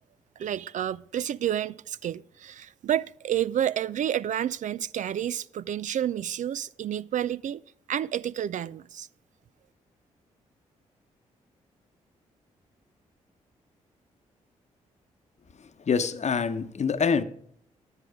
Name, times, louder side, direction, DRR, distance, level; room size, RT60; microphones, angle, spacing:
voice 1, 0.4-7.6 7.9-9.1, right 10 dB, 55° right, 0.4 m, -30 dB
voice 2, 15.9-17.2, left 5 dB, 45° left, 0.9 m, -25 dB
9.7 x 9.7 x 4.9 m
hypercardioid pair, 45°, 15 cm